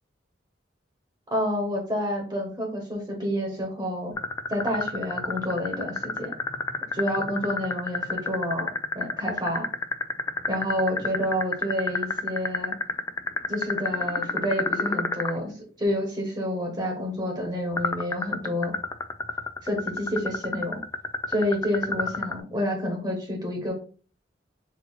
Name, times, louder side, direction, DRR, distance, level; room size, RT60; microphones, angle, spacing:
voice 1, 1.3-4.1 4.5-6.3 6.9-9.7 10.5-12.7 13.5-18.7 19.6-20.8 21.3-23.7, equal, 25° right, 1 dB, 1.2 m, -29 dB
sound 1, 4.2-15.3 17.8-22.4, left 3 dB, 15° left, 0.3 m, -28 dB
4.2 x 2.7 x 4.1 m, 0.39 s
head